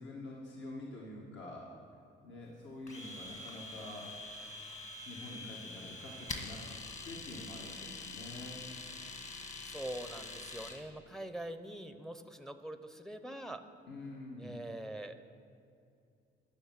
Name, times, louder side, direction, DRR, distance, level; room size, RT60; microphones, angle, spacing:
voice 1, 0.0-1.7 2.2-4.1 5.0-6.8 7.0-8.6 13.9-14.6, left 2 dB, 65° left, -4 dB, 1.8 m, -46 dB
Domestic sounds home sounds, 2.9-10.8, left 3 dB, 35° left, 1.6 m, -45 dB
voice 2, 9.6-13.6 14.4-15.3, right 1 dB, ahead, 9 dB, 0.6 m, -44 dB
11.5 x 6.6 x 7.3 m, 2.5 s
cardioid pair, 90°, 20 cm